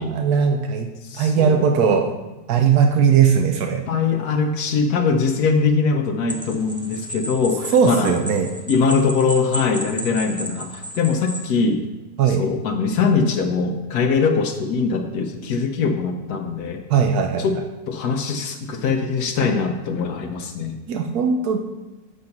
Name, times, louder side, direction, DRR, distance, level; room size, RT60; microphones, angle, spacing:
voice 1, 0.0-0.9 1.1-2.1 2.5-3.8 7.7-8.5 12.2-12.5 16.9-17.5 20.9-21.6, right 6 dB, 85° right, 4 dB, 1.2 m, -18 dB
voice 2, 1.0-1.6 3.9-8.2 8.7-11.8 12.4-16.8 17.4-17.6 17.9-20.8, left 5 dB, 85° left, 3 dB, 1.3 m, -22 dB
sound 1, 6.3-11.5, right 1 dB, 5° right, 0.8 m, -33 dB
8.7 x 5.3 x 5.9 m, 1.1 s
omnidirectional pair, 1.6 m